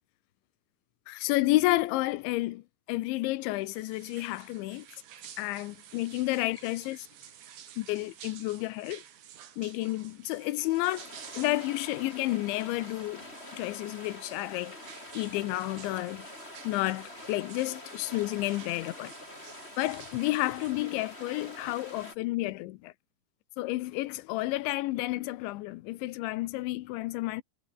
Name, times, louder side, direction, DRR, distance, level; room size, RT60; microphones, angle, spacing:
voice 1, 1.1-4.9 5.4-7.1 7.8-9.0 9.6-11.1 11.3-13.3 13.5-14.8 15.1-16.3 16.6-19.1 19.8-22.9 23.6-27.4, left 18 dB, 85° left, 3.1 m, -31 dB
sound 1, 3.6-20.7, right 10 dB, 70° right, 4.9 m, -52 dB
sound 2, 10.8-22.2, left 1 dB, 10° left, 7.1 m, -46 dB
omnidirectional pair, 5.4 m